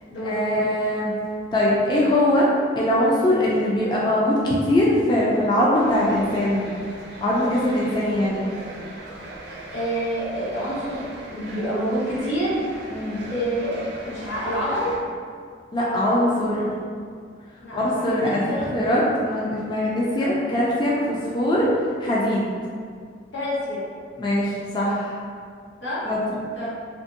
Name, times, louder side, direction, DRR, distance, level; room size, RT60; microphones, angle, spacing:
voice 1, 0.2-1.1 1.5-2.5 2.8-6.7 7.2-8.5 12.9-13.2 15.7-16.7 17.7-21.7 22.0-22.5 24.2-25.1 26.1-26.4, left 1 dB, 25° left, -6 dB, 0.3 m, -22 dB
sound 1, 5.7-15.0, right 2 dB, 65° right, 0.4 m, -39 dB
voice 2, 9.7-12.6 13.3-14.9 17.6-18.9 20.1-20.4 23.3-23.9 25.8-26.0 26.5-26.7, equal, 85° left, -9 dB, 1.0 m, -28 dB
2.6 x 2.5 x 2.5 m, 2.1 s
head